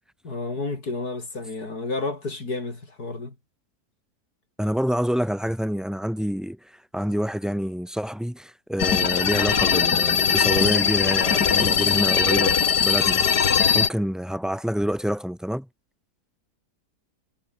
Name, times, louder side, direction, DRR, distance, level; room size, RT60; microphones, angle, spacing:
voice 1, 0.2-3.3, left 3 dB, 70° left, 5.1 m, -31 dB
voice 2, 4.6-13.2 13.7-15.7, equal, ahead, 7.5 m, -27 dB
sound 1, 8.8-13.9, left 7 dB, 90° left, 2.2 m, -20 dB
omnidirectional pair, 1.7 m